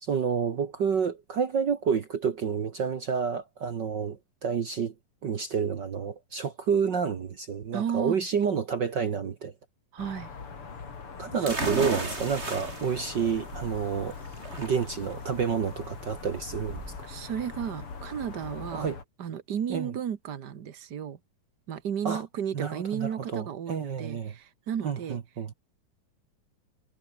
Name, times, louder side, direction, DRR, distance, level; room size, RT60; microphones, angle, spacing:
voice 1, 0.0-4.9 5.2-9.5 11.2-14.2 14.5-16.8 18.7-19.0 19.7-19.9 22.0-22.2 22.5-24.3 24.8-25.5, right 6 dB, 60° right, 1.1 m, -29 dB
voice 2, 7.7-8.2 9.9-10.3 11.4-11.8 17.0-18.9 19.2-21.2 21.7-25.2, right 8 dB, 80° right, 0.9 m, -33 dB
sound 1, 10.0-19.0, left 5 dB, 40° left, 3.9 m, -42 dB
sound 2, 11.5-18.9, right 2 dB, 20° right, 4.5 m, -37 dB
omnidirectional pair, 4.0 m